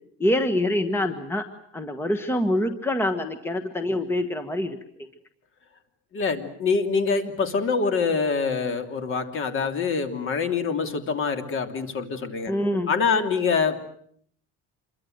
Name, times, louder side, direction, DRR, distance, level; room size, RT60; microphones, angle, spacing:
voice 1, 0.2-1.5 1.7-4.8 12.5-12.9, left 1 dB, 10° left, 8 dB, 1.4 m, -25 dB
voice 2, 6.1-12.5 12.9-13.9, left 5 dB, 45° left, 8 dB, 3.0 m, -25 dB
27.0 x 23.5 x 7.9 m, 0.65 s
cardioid pair, 150°, 29 cm